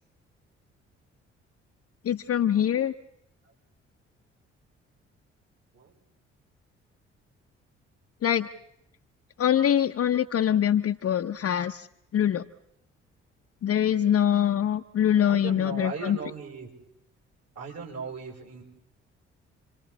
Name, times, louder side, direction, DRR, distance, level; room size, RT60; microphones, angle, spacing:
voice 1, 2.0-2.9 8.2-8.5 9.4-11.9 12.1-12.4 13.6-16.2, left 10 dB, 45° left, 5 dB, 1.0 m, -24 dB
voice 2, 15.0-16.7 17.6-18.6, right 5 dB, 50° right, 0 dB, 7.0 m, -38 dB
29.5 x 26.0 x 4.0 m, 0.79 s
figure-of-eight pair, 45°, 34 cm